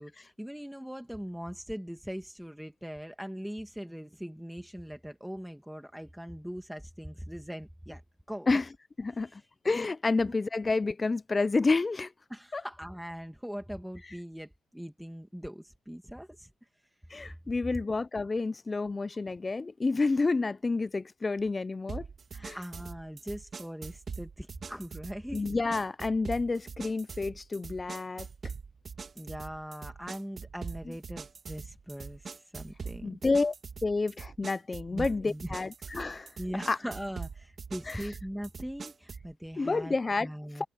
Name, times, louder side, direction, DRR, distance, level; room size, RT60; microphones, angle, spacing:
voice 1, 0.0-8.0 8.3-8.5 9.3-9.5 10.1-10.3 12.3-16.5 17.6-17.7 22.3-25.5 29.2-33.2 34.9-35.6 36.4-39.9 40.2-40.7, equal, ahead, 1.7 m, -41 dB
voice 2, 9.0-12.1 12.5-12.6 17.1-22.0 22.4-22.6 25.3-28.3 33.0-33.5 33.8-36.3 36.7-36.8 37.9-38.1 39.6-40.3 40.6-40.7, left 3 dB, 25° left, 0.4 m, -29 dB
sound 1, 21.9-39.3, right 5 dB, 40° right, 1.7 m, -43 dB
cardioid pair, 90°, 0 cm